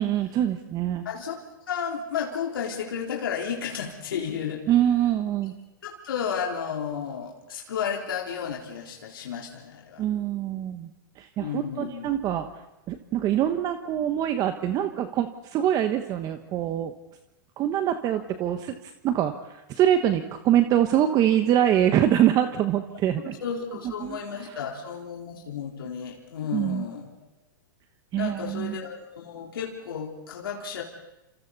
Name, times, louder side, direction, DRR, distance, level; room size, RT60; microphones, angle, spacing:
voice 1, 0.0-1.0 4.7-5.5 10.0-10.9 11.2-12.5 12.9-16.9 17.6-18.8 19.0-23.4 24.0-24.6 26.5-26.8 28.1-28.8, right 11 dB, 30° right, 8 dB, 1.3 m, -24 dB
voice 2, 1.0-1.4 1.7-4.7 5.8-10.0 11.4-12.1 23.2-27.1 28.1-30.8, left 7 dB, 80° left, -2 dB, 4.1 m, -33 dB
29.5 x 27.5 x 4.2 m, 0.94 s
hypercardioid pair, 125°, 12 cm